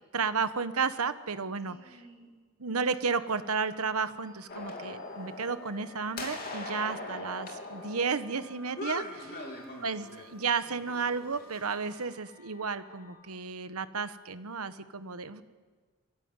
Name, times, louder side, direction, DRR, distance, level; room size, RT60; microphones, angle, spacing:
voice 1, 0.1-2.0 2.6-9.2 9.8-15.4, right 5 dB, 85° right, 12 dB, 1.2 m, -32 dB
voice 2, 1.6-2.3 6.6-6.8 7.1-7.2 9.2-9.7, right 2 dB, 30° right, -1 dB, 7.3 m, -50 dB
sound 1, 3.0-13.2, left 1 dB, 65° left, 7.4 m, -56 dB
sound 2, 4.5-10.3 10.7-12.0, left 2 dB, 45° left, 3.3 m, -41 dB
23.5 x 15.5 x 9.7 m, 1.5 s
head